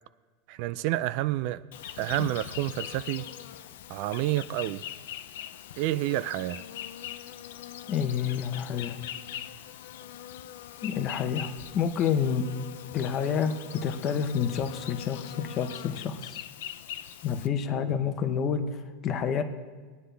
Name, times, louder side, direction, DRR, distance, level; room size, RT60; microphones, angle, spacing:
voice 1, 0.5-1.6 2.0-3.3 3.9-4.8 5.8-6.6 17.7-17.9, right 15 dB, 50° right, 0.3 m, -29 dB
Insect, 1.7-17.5, left 11 dB, 85° left, 0.6 m, -41 dB
voice 2, 7.9-9.0 10.8-12.5 12.9-16.4 17.2-19.4, left 7 dB, 30° left, 0.8 m, -29 dB
21.0 x 9.5 x 3.4 m
supercardioid pair, 160°, 0 cm